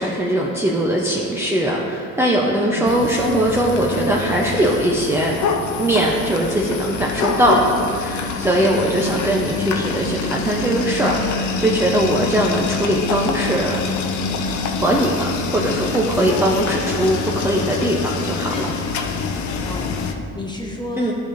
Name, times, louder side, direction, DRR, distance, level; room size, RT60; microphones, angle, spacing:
voice 1, 0.0-5.4 5.8-7.6 7.9-13.8 14.8-18.7 21.0-21.1, right 1 dB, 10° right, -3 dB, 0.6 m, -20 dB
sound 1, 2.9-20.1, left 5 dB, 75° left, 0.6 m, -26 dB
voice 2, 19.6-21.1, left 1 dB, 15° left, -1 dB, 1.1 m, -33 dB
11.5 x 4.9 x 2.6 m, 2.7 s
cardioid pair, 90°, 30 cm